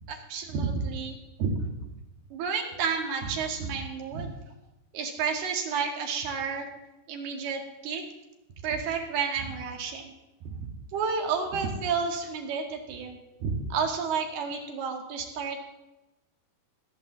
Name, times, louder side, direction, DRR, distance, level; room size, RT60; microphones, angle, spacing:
voice 1, 0.1-1.7 2.3-4.3 4.9-6.7 7.1-8.0 8.6-10.1 10.5-10.7 10.9-15.6, right 5 dB, 75° right, 2 dB, 3.8 m, -31 dB
16.5 x 8.8 x 7.4 m, 0.97 s
omnidirectional pair, 4.7 m